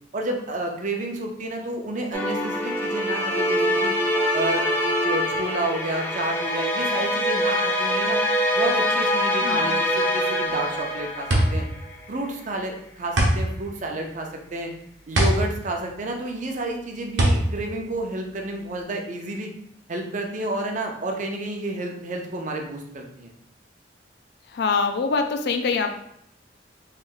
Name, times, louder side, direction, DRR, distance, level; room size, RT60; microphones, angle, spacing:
voice 1, 0.1-3.9 4.3-4.7 5.0-8.2 8.5-11.6 12.1-14.7 15.1-19.5 19.9-23.3, right 1 dB, 45° right, 2 dB, 0.6 m, -30 dB
sound 1, 2.1-11.9, equal, 10° left, 0.6 m, -24 dB
voice 2, 9.4-9.8 24.5-26.0, left 4 dB, 65° left, 6 dB, 0.4 m, -24 dB
sound 2, 10.5-18.8, right 1 dB, 75° right, 0.8 m, -24 dB
3.2 x 2.6 x 3.7 m, 0.73 s
head